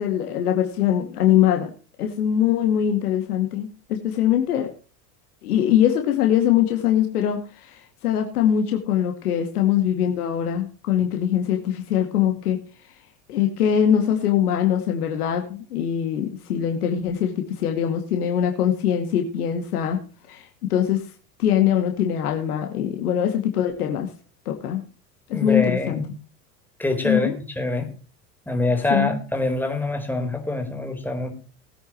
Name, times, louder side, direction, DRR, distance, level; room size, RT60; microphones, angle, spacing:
voice 1, 0.0-1.7 2.0-4.7 5.4-12.6 13.3-20.0 20.3-21.1 21.4-24.1 24.5-24.8 25.3-26.0 27.0-27.4 28.9-29.2, left 10 dB, 80° left, 3 dB, 2.4 m, -22 dB
voice 2, 25.3-26.1 26.8-27.9 28.5-31.3, left 2 dB, 5° left, 4 dB, 4.1 m, -25 dB
20.5 x 9.1 x 3.1 m, 0.37 s
hypercardioid pair, 85°, 45 cm